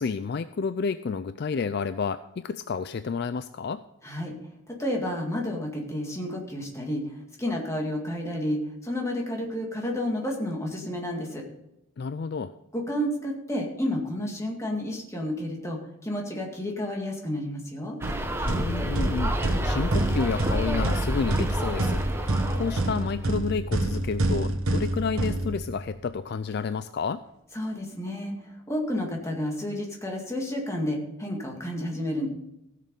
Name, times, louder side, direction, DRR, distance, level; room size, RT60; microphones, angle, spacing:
voice 1, 0.0-3.8 12.0-12.5 18.4-27.2, left 5 dB, 50° left, 12 dB, 0.3 m, -30 dB
voice 2, 4.0-4.3 4.7-7.0 7.4-11.4 12.7-18.0 27.5-32.3, left 1 dB, 15° left, 0 dB, 2.0 m, -31 dB
Atmo Offenbach - Barrel Organ on Frankfurter Straße, 18.0-23.2, right 1 dB, 10° right, 0.8 m, -29 dB
sound 1, 18.0-26.0, right 2 dB, 80° right, 1.3 m, -28 dB
16.0 x 6.7 x 5.3 m, 0.84 s
head